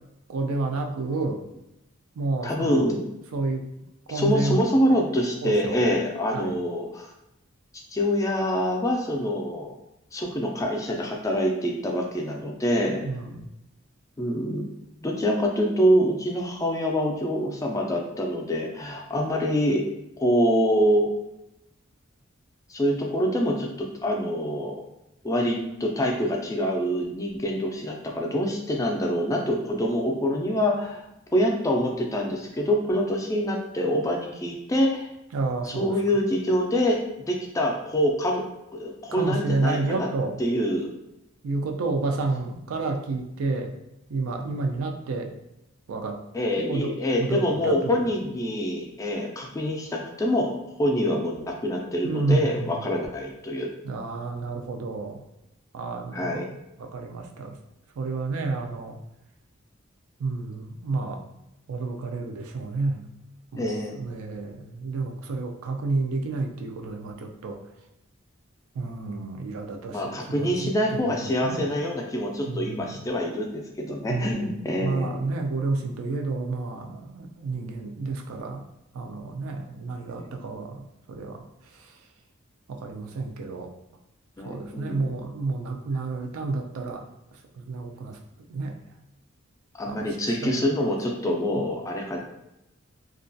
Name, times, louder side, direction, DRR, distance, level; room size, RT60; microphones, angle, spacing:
voice 1, 0.3-1.4 2.2-2.8 3.3-3.6 4.1-4.6 5.4-5.8 6.3-6.5 13.0-13.5 35.3-35.9 39.1-40.4 41.4-43.8 44.1-45.3 45.9-46.2 46.7-46.9 47.2-48.0 52.0-52.8 53.8-55.2 55.7-56.4 56.8-57.5 58.0-59.0 60.2-61.2 61.7-63.1 63.5-67.6 68.8-71.1 71.4-71.7 72.5-73.0 74.1-74.5 74.8-78.6 78.9-81.4 82.7-83.7 84.4-87.0 87.6-88.2 88.5-88.8 89.8-90.1 90.4-90.5 91.2-91.3, right 3 dB, 90° right, 3 dB, 0.4 m, -30 dB
voice 2, 2.4-3.0 4.1-7.1 7.9-9.7 10.1-13.0 14.2-14.7 15.0-19.8 20.2-21.1 22.7-24.8 25.2-31.0 31.3-35.1 35.6-38.4 38.7-40.1 40.4-40.9 46.3-53.7 56.1-56.5 63.6-63.9 69.9-75.2 80.2-80.3 84.4-85.3 89.8-92.2, equal, 15° left, 0 dB, 0.3 m, -25 dB
2.3 x 2.2 x 2.5 m, 0.87 s
head